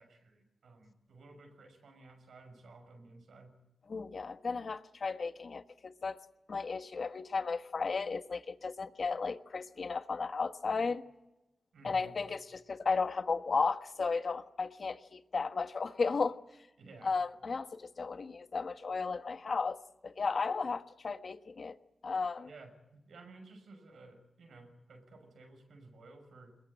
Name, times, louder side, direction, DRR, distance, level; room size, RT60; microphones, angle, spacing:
voice 1, 0.0-3.6 11.7-12.2 16.8-17.2 22.5-26.6, right 3 dB, 85° right, 5 dB, 6.3 m, -55 dB
voice 2, 3.9-6.2 6.5-11.0 11.8-16.4 17.0-21.8 22.0-22.5, left 4 dB, 65° left, 10 dB, 1.3 m, -34 dB
21.5 x 21.5 x 8.8 m, 0.98 s
cardioid pair, 45°, 0 cm